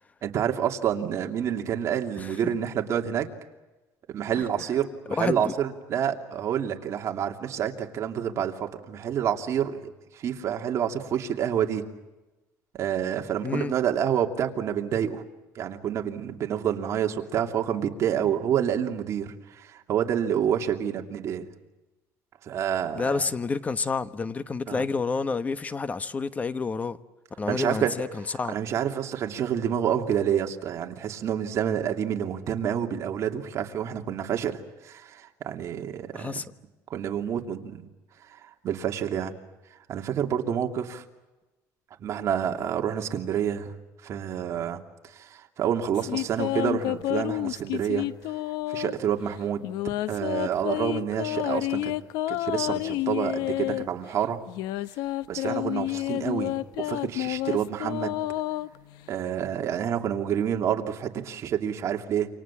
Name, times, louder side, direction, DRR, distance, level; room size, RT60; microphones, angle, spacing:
voice 1, 0.2-3.3 4.1-11.8 12.7-15.2 15.5-21.5 22.4-23.3 24.7-24.8 27.5-27.9 28.5-36.4 36.9-37.9 38.4-39.3 39.9-41.0 42.0-43.7 44.0-44.8 45.1-48.1 48.7-49.7 50.1-51.9 52.3-54.4 55.3-58.1 59.1-62.3, right 9 dB, 50° right, 2.8 m, -28 dB
voice 2, 5.1-5.5 13.4-13.7 22.9-27.0 27.4-28.5 36.1-36.5, left 4 dB, 25° left, 1.2 m, -29 dB
sound 1, 45.9-49.1 49.6-53.9 54.5-59.2, left 16 dB, 80° left, 0.8 m, -29 dB
28.5 x 26.5 x 7.5 m
cardioid pair, 135°, 7 cm